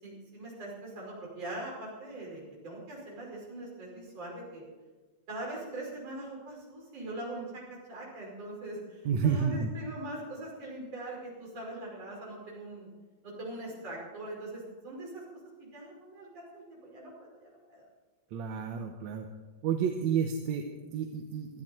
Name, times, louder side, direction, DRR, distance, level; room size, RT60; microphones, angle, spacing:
voice 1, 0.0-4.6 5.3-12.9 13.2-15.2 15.6-17.8, right 1 dB, 55° right, -4 dB, 6.5 m, -42 dB
voice 2, 9.1-9.7 18.3-19.3 19.6-21.6, right 7 dB, 70° right, 4 dB, 2.2 m, -30 dB
19.0 x 13.5 x 4.5 m, 1.3 s
omnidirectional pair, 3.5 m